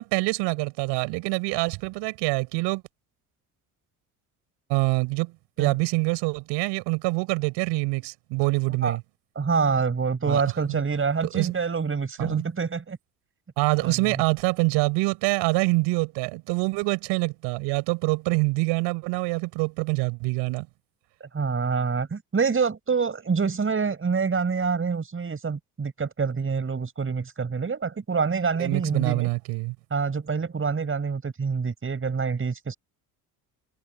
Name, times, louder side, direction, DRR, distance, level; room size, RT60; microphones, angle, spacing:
voice 1, 0.0-2.8 4.7-9.0 10.3-10.4 10.7-10.8 11.2-11.5 12.2-12.5 13.6-20.7 28.6-29.7, right 25 dB, 75° right, 6.6 m, -25 dB
voice 2, 9.3-13.0 13.8-14.2 21.2-29.3 29.9-32.7, right 5 dB, 30° right, 6.5 m, -26 dB
supercardioid pair, 70°, 42 cm